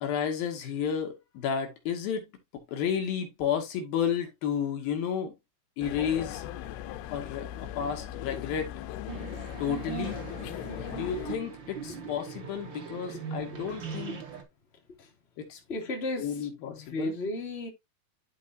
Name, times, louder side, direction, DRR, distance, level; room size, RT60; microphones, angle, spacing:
voice 1, 0.0-5.3 5.8-6.4 7.1-8.7 9.6-10.2 10.9-14.2 15.4-15.6 16.2-17.1, left 8 dB, 70° left, 3.1 m, -32 dB
sound 1, 5.8-11.4, left 12 dB, 90° left, 2.6 m, -39 dB
sound 2, 9.1-14.4, right 6 dB, 80° right, 1.0 m, -40 dB
voice 2, 15.7-17.7, left 2 dB, 20° left, 2.0 m, -34 dB
12.5 x 4.4 x 2.7 m
omnidirectional pair, 4.5 m